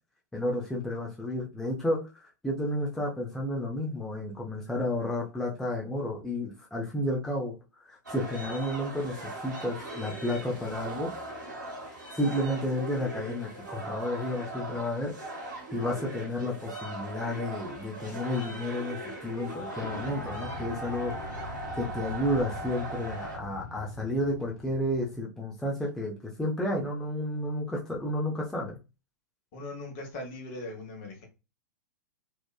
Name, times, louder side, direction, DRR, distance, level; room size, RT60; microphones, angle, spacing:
voice 1, 0.3-2.0 2.4-7.5 7.8-9.2 9.4-11.1 12.1-15.1 15.7-28.8, left 1 dB, 5° left, 0.5 m, -31 dB
sound 1, 8.0-23.4, right 1 dB, 85° right, 1.1 m, -39 dB
Explosion, 19.7-25.2, left 2 dB, 75° left, 0.5 m, -42 dB
voice 2, 29.5-31.3, left 2 dB, 45° left, 1.0 m, -40 dB
2.8 x 2.1 x 2.2 m
figure-of-eight pair, 100°, 10 cm